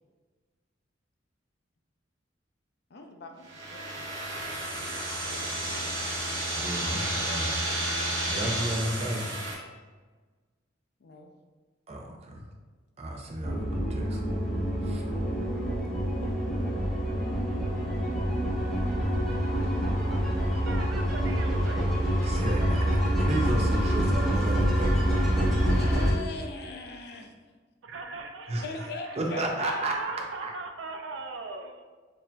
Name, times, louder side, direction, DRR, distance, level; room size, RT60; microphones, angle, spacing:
voice 1, 2.9-4.1 6.9-7.5 11.0-11.3 14.8-15.4 16.2-16.3 25.7-27.3 28.6-29.8, left 2 dB, 60° left, 3 dB, 0.5 m, -41 dB
sound 1, 3.4-9.5, right 1 dB, 70° right, 0.9 m, -31 dB
voice 2, 6.6-7.6 8.3-9.4 11.9-12.4 13.0-14.2 14.8-15.0 22.2-25.3 28.5-28.6 29.2-30.1 30.4-30.5, right 1 dB, 35° right, 1 dB, 0.5 m, -33 dB
sound 2, 13.4-26.1, equal, ahead, 0.9 m, -26 dB
voice 3, 20.2-22.2 27.8-31.8, right 4 dB, 85° right, 4 dB, 0.5 m, -40 dB
6.2 x 2.7 x 2.2 m, 1.4 s
head